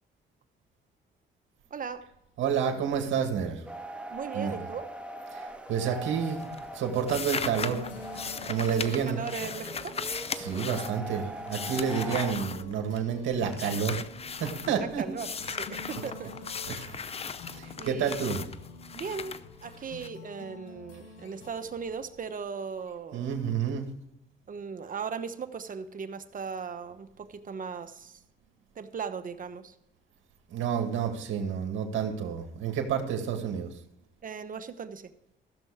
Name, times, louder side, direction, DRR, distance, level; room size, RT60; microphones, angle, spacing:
voice 1, 1.7-2.1 4.1-4.9 8.7-10.0 14.7-16.6 17.8-18.6 18.9-23.3 24.5-28.2 28.7-29.7 34.2-35.1, right 6 dB, 45° right, 9 dB, 1.1 m, -38 dB
voice 2, 2.4-3.6 4.3-4.6 5.3-5.4 5.7-6.5 6.7-7.9 8.5-9.2 10.4-14.0 14.4-15.0 16.7-17.0 17.6-18.5 23.1-23.9 30.5-33.7, right 7 dB, 75° right, 4 dB, 2.1 m, -29 dB
sound 1, 3.7-12.3, right 2 dB, 5° right, 1.5 m, -41 dB
sound 2, 5.7-6.2 6.4-13.2 13.5-14.7 15.2-20.1, left 6 dB, 30° left, 0.6 m, -38 dB
sound 3, 7.4-23.3, left 3 dB, 75° left, 1.6 m, -48 dB
15.0 x 7.0 x 5.0 m, 0.85 s
cardioid pair, 90°, 20 cm